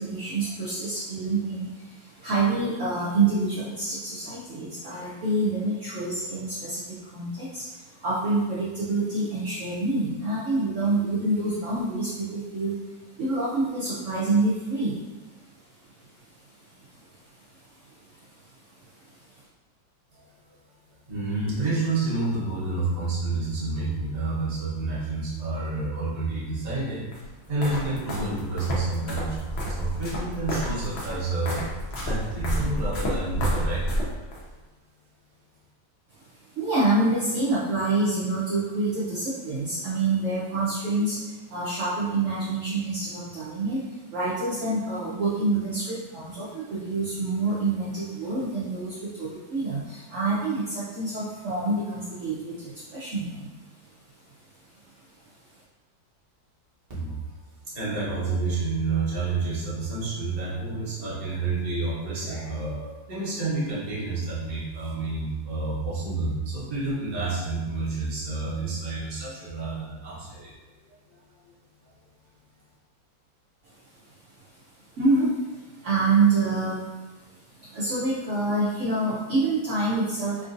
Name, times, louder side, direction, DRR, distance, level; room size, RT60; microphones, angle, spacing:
voice 1, 0.0-1.7 2.2-6.8 7.1-7.6 8.0-12.7 13.2-14.9 36.6-41.2 41.5-43.8 44.1-49.8 50.1-52.5 52.9-53.2 75.0-75.3 75.8-76.8 77.7-80.5, right 3 dB, 80° right, -8 dB, 0.6 m, -26 dB
voice 2, 20.1-20.6 21.1-27.1 27.5-31.7 32.0-34.0 56.9-57.3 57.6-71.2 71.8-71.9, right 3 dB, 35° right, -7 dB, 0.6 m, -29 dB
sound 1, 27.1-34.4, equal, 75° left, 0.5 m, -30 dB
3.6 x 2.5 x 2.5 m, 1.2 s
omnidirectional pair, 2.0 m